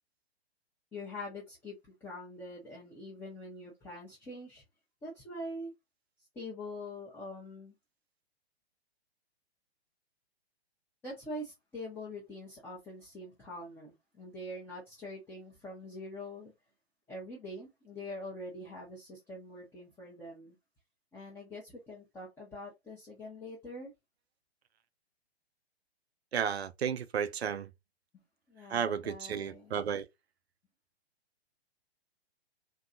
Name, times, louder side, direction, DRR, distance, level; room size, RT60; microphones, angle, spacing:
voice 1, 0.9-4.6 5.0-5.7 6.3-7.7 11.0-16.5 17.1-20.5 21.1-23.9 28.1-28.2 28.5-29.8, left 1 dB, 5° left, 0.5 m, -44 dB
voice 2, 26.3-27.7 28.7-30.1, right 7 dB, 70° right, 0.5 m, -33 dB
2.7 x 2.3 x 2.4 m
figure-of-eight pair, 115°, 32 cm